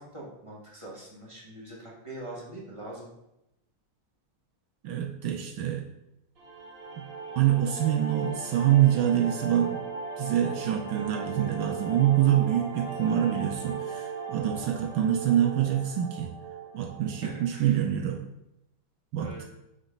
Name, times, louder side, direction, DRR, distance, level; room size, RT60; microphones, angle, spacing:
voice 1, 0.0-3.1 17.2-17.8 19.2-19.4, right 1 dB, 15° right, -4 dB, 1.3 m, -43 dB
voice 2, 4.8-5.8 7.0-7.1 7.4-9.8 10.2-16.3 16.7-18.2 19.1-19.4, right 11 dB, 75° right, 2 dB, 1.4 m, -25 dB
sound 1, 6.4-17.4, right 4 dB, 55° right, 2.5 m, -38 dB
6.4 x 4.0 x 5.1 m, 0.87 s
omnidirectional pair, 2.3 m